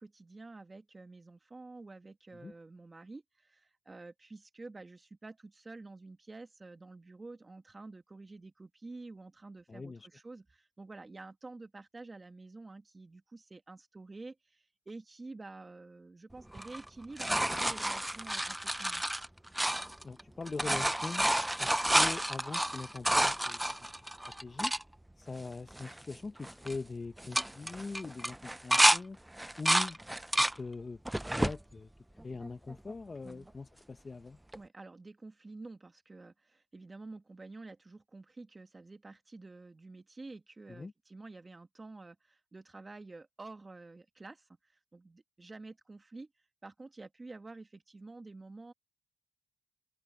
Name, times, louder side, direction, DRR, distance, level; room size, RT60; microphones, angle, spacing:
voice 1, 0.0-19.0 33.2-33.5 34.5-46.3 46.6-48.7, right 3 dB, 20° right, 2.0 m, -49 dB
voice 2, 9.7-10.1 20.0-21.2 21.6-23.8 24.4-24.7 25.2-29.2 29.6-30.0 30.5-31.0 31.4-31.9 32.2-34.4 40.7-40.9, left 4 dB, 30° left, 1.2 m, -42 dB
sound 1, 16.5-20.2 20.5-24.8 25.4-25.5 25.7-26.1 26.4-26.8 27.2-29.0 29.4-30.6 31.1-31.6 32.2-32.9 34.5-34.6, right 1 dB, 5° right, 0.6 m, -30 dB
cardioid pair, 90°, 0 cm